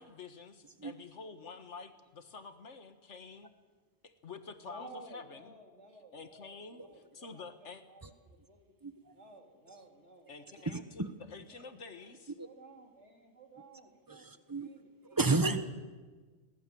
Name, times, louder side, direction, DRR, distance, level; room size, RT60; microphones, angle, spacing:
voice 1, 0.0-3.5 4.0-5.5 6.1-7.8 10.3-12.3, left 4 dB, 90° left, 9 dB, 1.9 m, -48 dB
voice 2, 4.6-7.5 7.8-8.6 8.9-10.7 11.5-15.2, right 2 dB, 90° right, 3 dB, 3.4 m, -55 dB
voice 3, 8.8-9.1 10.7-11.1 12.4-12.5 14.1-14.7 15.1-15.6, right 3 dB, 20° right, 10 dB, 1.1 m, -32 dB
22.0 x 18.5 x 7.8 m, 1.4 s
omnidirectional pair, 1.2 m